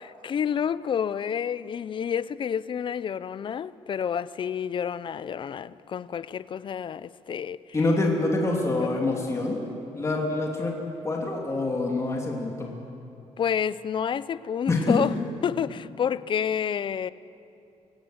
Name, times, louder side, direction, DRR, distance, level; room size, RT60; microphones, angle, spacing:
voice 1, 0.0-7.6 13.4-15.1 15.4-17.1, left 8 dB, 40° left, 0.6 m, -29 dB
voice 2, 7.7-9.6 9.9-10.8 11.0-12.8 14.7-15.0, left 2 dB, 25° left, 2.9 m, -26 dB
26.0 x 17.5 x 8.0 m
cardioid pair, 135°, 12 cm